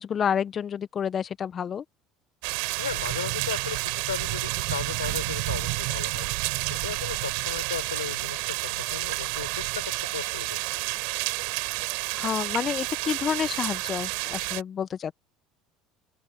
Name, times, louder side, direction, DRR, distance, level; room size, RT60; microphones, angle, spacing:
voice 1, 0.0-1.8 12.1-15.1, left 8 dB, 40° left, 1.3 m, -29 dB
sound 1, 2.4-14.6, right 36 dB, 70° right, 4.5 m, -30 dB
voice 2, 2.8-6.3 6.7-9.8 10.1-10.8, left 8 dB, 90° left, 5.3 m, -36 dB
open air
hypercardioid pair, 70°, 0 cm